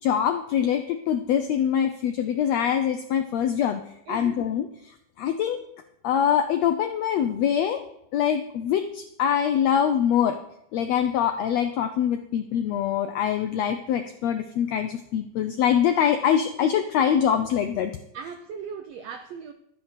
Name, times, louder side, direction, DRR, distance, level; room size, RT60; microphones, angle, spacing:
voice 1, 0.0-3.8 4.1-4.9 5.2-5.6 6.0-7.8 8.1-10.4 10.7-17.9, left 9 dB, 80° left, 8 dB, 1.5 m, -24 dB
voice 2, 4.1-4.4 18.1-19.5, right 6 dB, 90° right, 7 dB, 1.4 m, -38 dB
12.5 x 7.4 x 6.6 m, 0.78 s
omnidirectional pair, 3.8 m